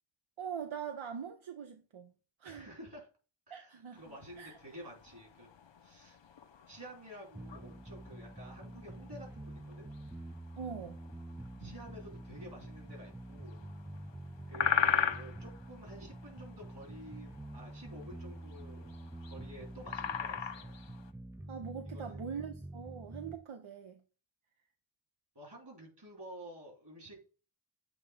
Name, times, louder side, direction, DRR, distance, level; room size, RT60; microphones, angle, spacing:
voice 1, 0.4-2.1 2.4-2.7 3.5-4.0 4.4-4.6 10.6-11.0 21.5-24.0, right 7 dB, 85° right, 0.7 m, -42 dB
voice 2, 2.4-3.1 3.5-5.5 5.8-6.2 6.7-9.9 11.6-13.7 14.5-18.9 19.2-20.8 21.9-22.4 25.3-27.2, right 1 dB, 60° right, 3.3 m, -51 dB
sound 1, 4.0-21.1, left 7 dB, 70° left, 0.6 m, -40 dB
sound 2, 7.3-23.4, right 1 dB, 5° right, 0.3 m, -47 dB
8.0 x 2.9 x 4.9 m
wide cardioid pair, 45°, 46 cm